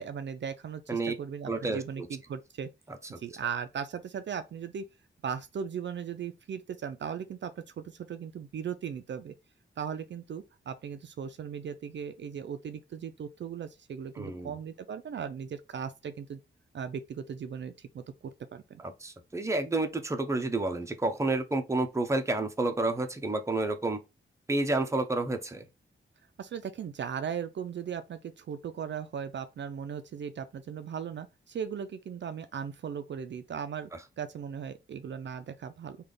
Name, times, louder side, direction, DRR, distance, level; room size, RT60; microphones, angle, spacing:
voice 1, 0.0-2.7 3.2-4.8 5.2-9.3 9.8-16.4 16.7-18.0 18.5-18.8 26.4-33.9 34.2-36.0, right 7 dB, 60° right, 0.4 m, -38 dB
voice 2, 1.5-2.1 2.9-3.2 14.2-14.6 18.8-24.0 24.5-25.6, right 2 dB, 15° right, 0.6 m, -30 dB
3.3 x 2.3 x 3.8 m
wide cardioid pair, 95°, 21 cm